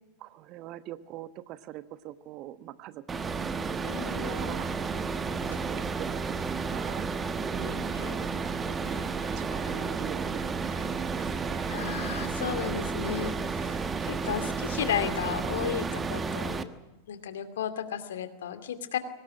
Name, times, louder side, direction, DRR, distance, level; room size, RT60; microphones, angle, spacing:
voice 1, 0.2-3.6 4.2-4.7 5.4-6.2 6.5-7.1 7.4-7.8 8.6-9.1 9.4-11.7, right 14 dB, 40° right, 13 dB, 1.0 m, -43 dB
sound 1, 3.1-16.6, right 4 dB, 15° right, 1.3 m, -32 dB
voice 2, 3.8-4.6 7.6-8.3 11.7-16.7 17.1-19.0, left 9 dB, 60° left, 9 dB, 2.5 m, -34 dB
sound 2, 5.5-15.9 16.2-16.7 17.1-17.2, left 1 dB, 85° left, 5.0 m, -54 dB
24.0 x 19.0 x 9.9 m, 1.0 s
figure-of-eight pair, 90°, 0 cm